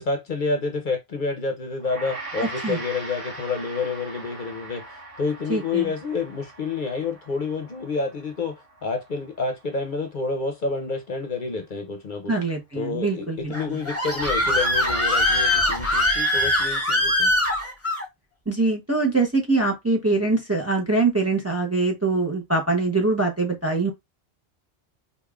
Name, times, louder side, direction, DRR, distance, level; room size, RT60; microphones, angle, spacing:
voice 1, 0.0-4.8 5.2-8.5 8.8-12.3 12.7-17.3, left 4 dB, 50° left, 0.8 m, -28 dB
Gong, 1.8-11.2, right 2 dB, 60° right, 3.0 m, -41 dB
voice 2, 5.5-5.9 12.3-13.8 18.5-23.9, right 3 dB, 15° right, 0.7 m, -23 dB
Screaming, 13.5-18.1, left 1 dB, 15° left, 1.0 m, -22 dB
5.0 x 2.5 x 2.3 m
omnidirectional pair, 1.1 m